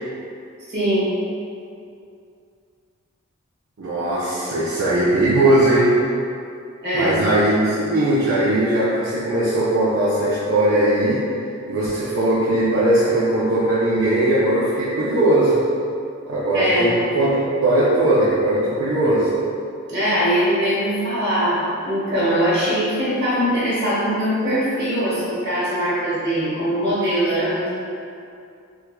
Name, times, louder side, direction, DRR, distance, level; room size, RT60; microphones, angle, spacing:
voice 1, 0.7-1.2 6.8-7.1 16.5-17.0 19.9-27.7, equal, 50° right, -10 dB, 1.3 m, -21 dB
voice 2, 3.8-5.9 6.9-11.2 11.7-15.6 16.3-19.3, right 1 dB, 65° right, -10 dB, 0.5 m, -19 dB
4.3 x 2.3 x 2.3 m, 2.5 s
head